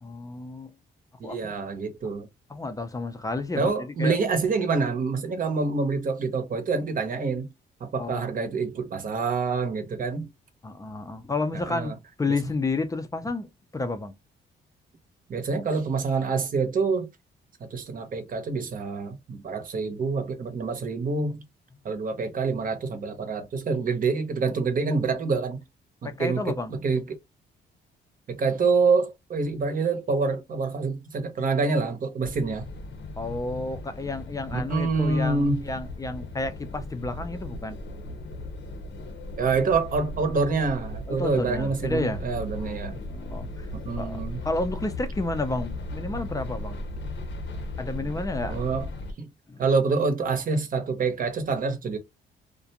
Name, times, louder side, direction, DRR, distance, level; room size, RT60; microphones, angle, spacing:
voice 1, 0.0-0.7 1.2-1.6 2.5-4.2 8.0-8.4 10.6-13.5 13.7-14.1 26.0-26.7 33.2-37.8 41.1-42.3 42.5-42.7 43.0-43.7 44.0-46.8 47.8-48.6 49.5-49.7, left 2 dB, 15° left, 0.5 m, -31 dB
voice 2, 1.2-2.3 3.6-7.5 7.8-10.3 11.7-11.9 15.3-17.1 17.6-21.4 21.8-25.6 26.0-27.2 28.3-32.6 34.5-35.7 39.4-43.0 43.7-44.4 48.5-48.9 49.2-49.3 49.6-52.0, right 4 dB, 45° right, 0.8 m, -26 dB
sound 1, 32.2-49.1, left 1 dB, 70° left, 0.7 m, -37 dB
2.4 x 2.1 x 2.7 m
cardioid pair, 95°, 20 cm